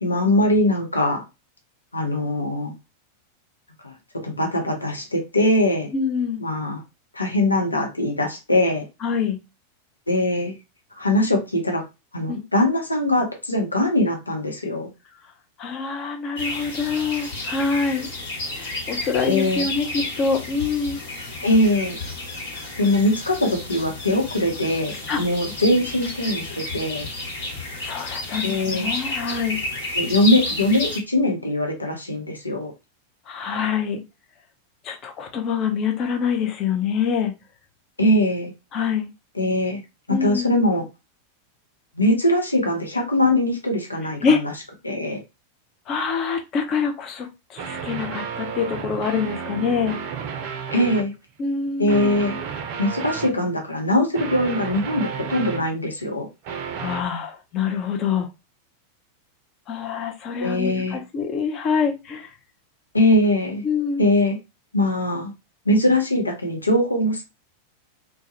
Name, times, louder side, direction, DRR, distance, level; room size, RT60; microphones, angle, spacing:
voice 1, 0.0-1.2 1.9-2.7 3.8-3.9 4.2-5.9 6.4-6.8 7.1-8.8 10.1-10.5 11.0-11.8 12.1-14.9 19.3-19.6 21.4-22.0 22.8-27.1 28.4-28.9 29.9-32.7 38.0-38.5 39.3-39.8 40.1-40.8 42.0-44.5 44.8-45.2 50.7-51.1 51.8-52.4 52.8-56.3 60.4-61.0 62.9-63.6 64.0-64.4 64.7-65.3 65.7-67.2, left 1 dB, 80° left, 1 dB, 0.7 m, -21 dB
voice 2, 5.9-6.4 9.0-9.4 12.3-12.4 15.6-18.1 18.5-21.0 25.1-25.2 27.7-29.6 33.3-34.0 34.8-37.3 38.7-39.1 40.1-40.5 44.2-44.4 45.9-50.0 51.4-52.2 56.8-58.3 59.7-62.3 63.6-64.0, left 6 dB, 35° left, 3 dB, 0.4 m, -25 dB
sound 1, 16.4-31.0, left 2 dB, 65° left, 1.0 m, -31 dB
sound 2, 47.6-51.1 51.9-53.4 54.1-55.9 56.4-57.0, right 6 dB, 45° right, 0.4 m, -32 dB
2.2 x 2.0 x 2.7 m, 0.25 s
figure-of-eight pair, 90°, 0 cm